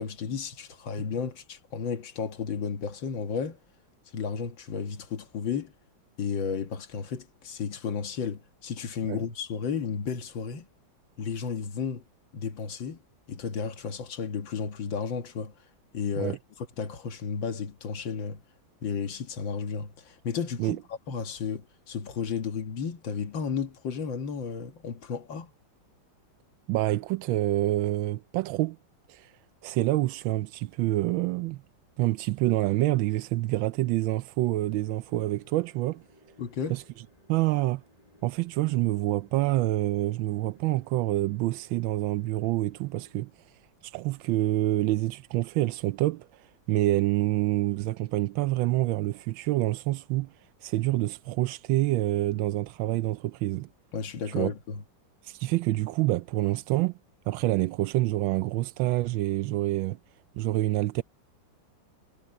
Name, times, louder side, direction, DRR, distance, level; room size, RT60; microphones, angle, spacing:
voice 1, 0.0-3.6 4.1-5.7 6.2-10.7 11.2-12.0 12.3-13.0 13.3-15.5 15.9-18.4 18.8-20.8 21.1-25.5 36.4-36.8 53.9-54.8, left 6 dB, 75° left, 2.2 m, -33 dB
voice 2, 26.7-28.8 29.1-29.3 29.6-31.6 32.0-36.0 36.7-36.8 37.3-37.8 38.2-43.5 43.8-50.3 50.6-53.7 54.3-54.5 55.2-56.9 57.3-60.0 60.3-61.0, right 17 dB, 90° right, 1.3 m, -27 dB
sound 1, 34.7-43.1, equal, 20° left, 7.6 m, -60 dB
omnidirectional pair, 2.1 m